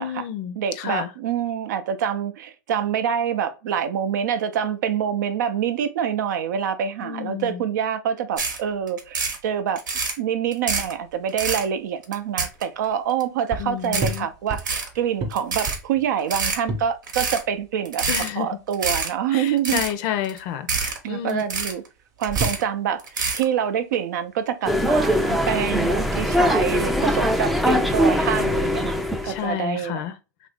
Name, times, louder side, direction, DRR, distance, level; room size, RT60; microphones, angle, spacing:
voice 1, 0.0-1.1 7.0-7.6 13.6-14.3 18.1-18.5 19.3-21.4 29.2-30.1, left 10 dB, 50° left, 0.5 m, -30 dB
voice 2, 0.6-9.8 10.2-18.1 18.4-19.8 21.0-21.8 22.2-23.0 23.3-30.0, right 8 dB, 70° right, 0.5 m, -26 dB
sound 1, 8.4-8.6 8.9-9.4 9.8-10.2 10.5-10.9 11.3-11.7 12.0-12.9 13.2-13.3 13.8-14.2 14.5-14.9 15.3-15.8 16.2-16.6 17.1-17.4 17.9-18.3 18.7-19.1 19.5-19.9 20.2-20.4 20.7-21.0 21.3-21.9 22.2-22.6 23.0-23.4, right 4 dB, 85° right, 0.9 m, -26 dB
sound 2, 10.6-28.8, right 2 dB, 35° right, 0.8 m, -36 dB
sound 3, 24.7-29.4, equal, ahead, 0.4 m, -21 dB
3.0 x 2.5 x 3.4 m
hypercardioid pair, 105°, 10 cm